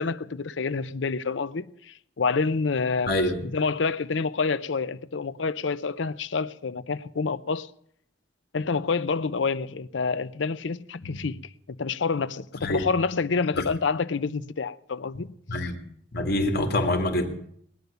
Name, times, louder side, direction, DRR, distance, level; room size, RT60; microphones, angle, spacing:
voice 1, 0.0-3.1 3.4-7.7 8.5-11.4 11.7-15.3, left 4 dB, 80° left, 0.6 m, -28 dB
voice 2, 3.1-3.5 11.0-11.2 12.6-12.9 13.5-13.6 15.5-15.8 16.1-17.3, left 1 dB, 60° left, 2.0 m, -26 dB
19.5 x 10.5 x 6.8 m
head